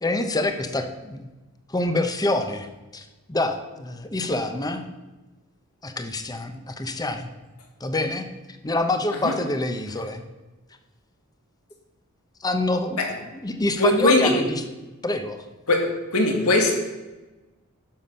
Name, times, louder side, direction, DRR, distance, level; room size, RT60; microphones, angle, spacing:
voice 1, 0.0-1.3 1.7-2.7 2.9-4.8 5.8-7.3 7.8-10.2 12.4-13.0 13.4-14.6 15.0-15.4, left 2 dB, 20° left, 7 dB, 0.8 m, -26 dB
voice 2, 13.8-14.4 15.7-16.7, left 1 dB, 85° left, 2 dB, 2.1 m, -20 dB
11.5 x 7.0 x 5.6 m, 1.2 s
head